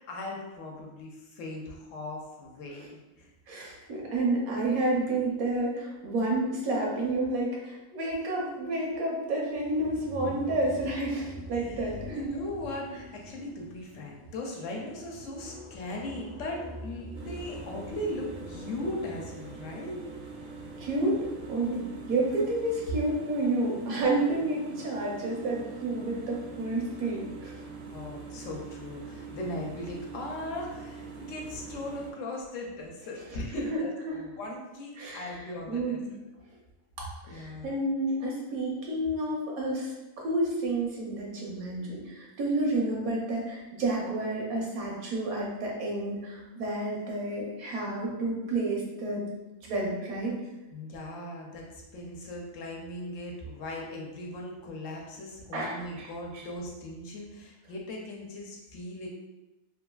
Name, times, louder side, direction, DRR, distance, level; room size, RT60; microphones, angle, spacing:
voice 1, 0.0-3.3 3.7-3.9 11.5-20.0 27.9-36.0 37.3-37.7 50.7-51.7 51.9-59.1, left 1 dB, 70° left, -1 dB, 0.9 m, -38 dB
voice 2, 3.5-12.1 20.8-21.2 21.5-27.5 33.7-33.8 34.1-34.2 35.0-35.3 35.7-36.1 37.3-49.2 49.6-50.3 55.5-56.4, right 2 dB, 85° right, -2 dB, 1.2 m, -30 dB
sound 1, 9.5-21.5, equal, 20° right, 0.4 m, -45 dB
sound 2, 17.1-32.1, right 4 dB, 60° right, 0.6 m, -44 dB
3.0 x 2.4 x 2.2 m, 1.0 s
omnidirectional pair, 1.4 m